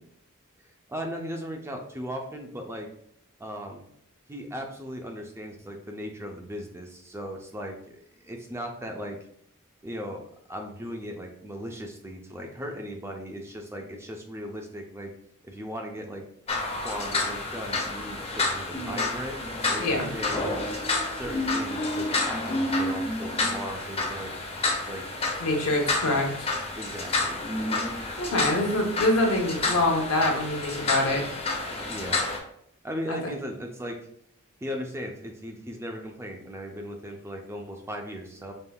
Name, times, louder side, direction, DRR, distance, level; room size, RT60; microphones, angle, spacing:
voice 1, 0.9-2.9 3.4-3.8 4.3-9.2 9.8-10.2 10.5-15.1 15.4-16.2 16.8-19.4 19.7-20.6 21.0-24.3 24.8-25.1 26.8-27.4 31.8-32.2 32.8-34.0 34.6-38.5, equal, 10° right, 2 dB, 0.5 m, -37 dB
sound 1, 16.5-32.4, left 2 dB, 25° left, 0.8 m, -29 dB
voice 2, 25.4-26.5 28.2-31.2 33.1-33.2, left 1 dB, 70° left, 1 dB, 1.0 m, -25 dB
5.4 x 3.3 x 2.3 m, 0.69 s
head